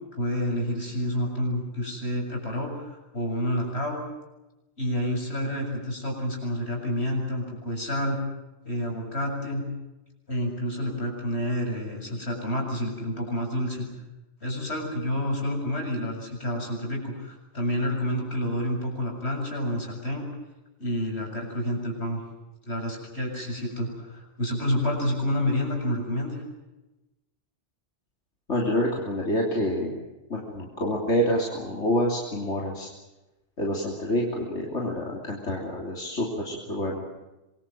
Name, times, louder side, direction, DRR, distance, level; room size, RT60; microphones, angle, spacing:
voice 1, 0.1-4.0 4.8-8.2 8.6-9.7 10.3-13.9 14.4-20.3 20.8-22.2 22.6-26.4, left 1 dB, 65° left, 1 dB, 7.6 m, -29 dB
voice 2, 28.5-30.0 30.3-32.9 33.6-37.0, equal, 90° left, -1 dB, 3.6 m, -27 dB
26.0 x 23.0 x 7.7 m, 1.0 s
omnidirectional pair, 1.2 m